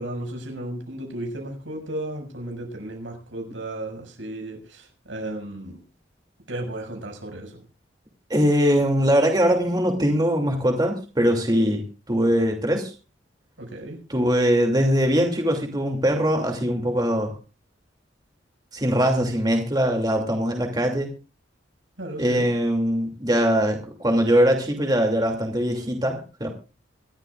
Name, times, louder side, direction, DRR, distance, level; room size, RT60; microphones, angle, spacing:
voice 1, 0.0-5.8 6.5-7.6 13.6-14.0 22.0-22.5, right 1 dB, 85° right, 3 dB, 6.4 m, -34 dB
voice 2, 8.3-12.9 14.1-17.3 18.7-21.1 22.2-26.5, equal, 20° right, 3 dB, 2.7 m, -22 dB
26.0 x 13.0 x 2.5 m, 0.33 s
head